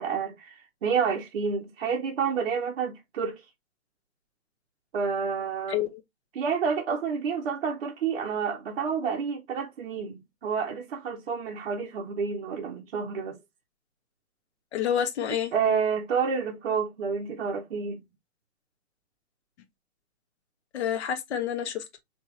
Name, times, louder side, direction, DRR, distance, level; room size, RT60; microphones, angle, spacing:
voice 1, 0.0-3.4 4.9-5.8 6.3-13.4 15.5-18.0, right 6 dB, 40° right, 0.7 m, -29 dB
voice 2, 5.7-6.0 14.7-15.5 20.7-21.8, left 9 dB, 45° left, 0.9 m, -28 dB
3.4 x 2.9 x 3.1 m
hypercardioid pair, 145°, 45 cm